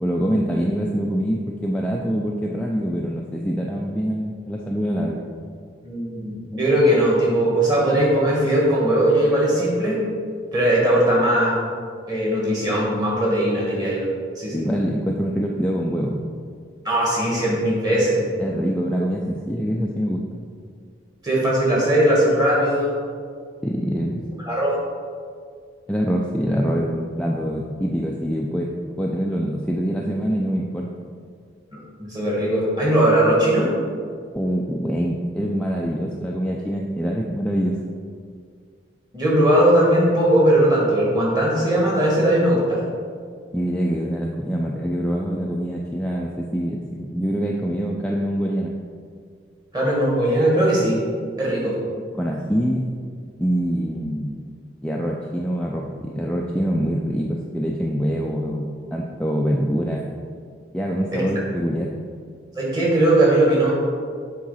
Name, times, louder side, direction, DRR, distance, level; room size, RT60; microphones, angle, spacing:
voice 1, 0.0-5.2 14.5-16.2 18.4-20.2 23.6-24.2 25.9-28.7 29.0-30.9 34.3-37.8 43.5-48.7 52.2-52.9 53.4-54.4 54.8-60.1 60.7-61.9, equal, 5° left, -2 dB, 0.4 m, -24 dB
voice 2, 5.8-10.0 10.5-11.6 12.1-14.1 14.4-14.7 16.8-18.2 21.2-22.9 24.4-24.8 32.0-33.7 39.1-42.8 49.7-51.0 51.4-51.8 61.1-61.2 62.6-63.7, right 1 dB, 20° right, -5 dB, 1.8 m, -19 dB
7.5 x 3.7 x 5.6 m, 2.1 s
head